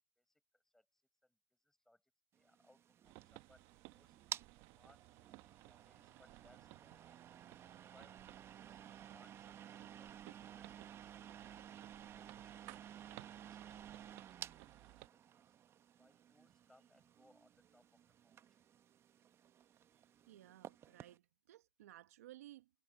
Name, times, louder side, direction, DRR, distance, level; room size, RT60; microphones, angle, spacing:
voice 1, 0.2-2.0 2.3-4.2 4.7-5.2 5.6-7.2 7.6-11.6 12.1-14.5 14.9-15.5 16.0-18.6, left 1 dB, 5° left, 6.8 m, -72 dB
sound 1, 2.5-21.2, right 9 dB, 30° right, 1.2 m, -54 dB
sound 2, 3.0-15.1, right 23 dB, 55° right, 1.1 m, -60 dB
voice 2, 19.9-22.7, right 14 dB, 80° right, 1.5 m, -58 dB
hypercardioid pair, 110°, 8 cm